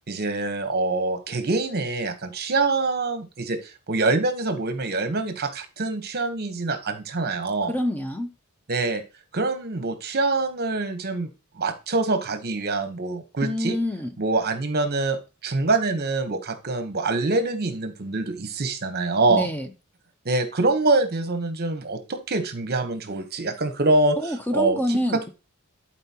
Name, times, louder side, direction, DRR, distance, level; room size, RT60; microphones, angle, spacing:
voice 1, 0.1-7.7 8.7-9.0 9.3-11.3 11.6-13.8 14.2-15.2 15.4-19.5 20.2-24.2 24.5-25.3, right 3 dB, 45° right, 1.0 m, -25 dB
voice 2, 7.7-8.3 13.4-14.1 19.3-19.7 24.2-25.3, left 1 dB, 10° left, 0.5 m, -26 dB
11.5 x 4.5 x 2.9 m
head